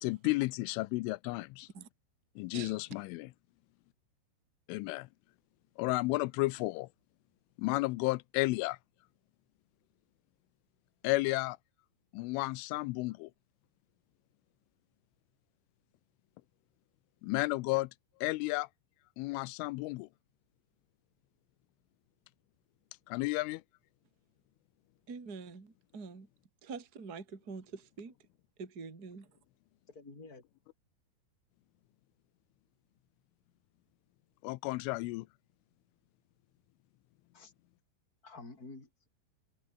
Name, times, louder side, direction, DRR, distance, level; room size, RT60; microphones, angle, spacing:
voice 1, 0.0-1.7 2.4-3.3 4.7-5.1 5.8-6.9 7.6-8.8 11.0-11.6 12.1-13.3 17.2-17.9 18.2-18.7 19.2-20.1 23.1-23.6 34.4-35.3, left 22 dB, 85° left, 3.3 m, -32 dB
voice 2, 25.1-26.3 26.6-28.1 28.6-29.2, right 5 dB, 20° right, 3.3 m, -45 dB
voice 3, 29.9-30.4 37.3-37.5 38.2-39.1, left 3 dB, 20° left, 6.7 m, -50 dB
omnidirectional pair, 5.6 m